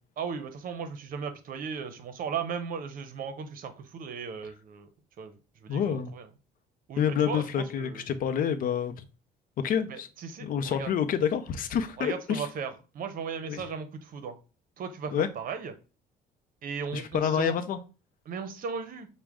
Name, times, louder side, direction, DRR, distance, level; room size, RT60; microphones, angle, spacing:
voice 1, 0.2-4.9 5.2-6.3 6.9-8.0 9.9-10.9 12.0-14.4 14.8-15.7 16.6-17.5 18.3-19.1, right 6 dB, 55° right, 0.8 m, -36 dB
voice 2, 5.7-6.1 7.0-9.0 9.6-10.1 10.4-12.5 13.5-13.6 15.1-15.3 16.9-17.8, left 8 dB, 55° left, 0.6 m, -28 dB
6.0 x 2.2 x 3.5 m
cardioid pair, 110°, 17 cm